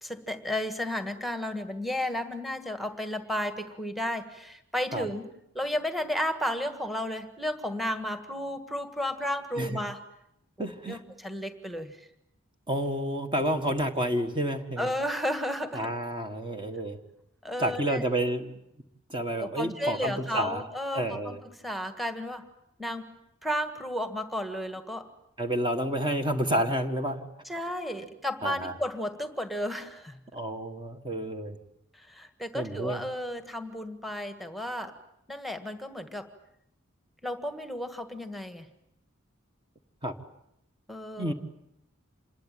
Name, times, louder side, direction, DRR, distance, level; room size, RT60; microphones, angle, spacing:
voice 1, 0.0-10.0 10.9-12.1 14.8-15.9 17.4-18.0 19.4-21.4 21.6-22.5 22.8-23.1 23.4-25.1 27.4-30.2 31.9-34.9 35.3-36.3 37.2-38.6 40.9-41.3, left 1 dB, ahead, 8 dB, 1.7 m, -33 dB
voice 2, 10.6-11.0 12.7-14.9 15.7-17.0 17.6-18.5 19.1-20.6 20.9-21.4 25.4-27.3 28.4-28.7 30.3-31.6 32.5-33.0 40.0-40.1 41.2-41.3, right 1 dB, 25° right, 6 dB, 1.6 m, -29 dB
27.0 x 21.0 x 9.1 m, 0.80 s
head